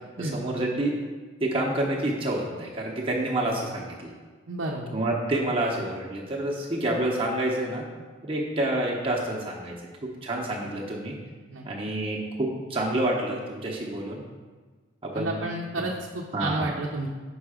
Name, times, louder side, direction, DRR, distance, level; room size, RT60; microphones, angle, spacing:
voice 1, 0.2-0.9 1.4-4.1 4.9-7.8 8.2-9.8 10.0-11.2 11.6-14.2 15.0-15.4 15.8-15.9 16.3-16.7, right 1 dB, 30° right, -2 dB, 0.7 m, -28 dB
voice 2, 4.5-5.0 11.5-11.6 15.1-17.1, right 2 dB, 70° right, -2 dB, 0.6 m, -31 dB
5.5 x 4.7 x 4.8 m, 1.4 s
head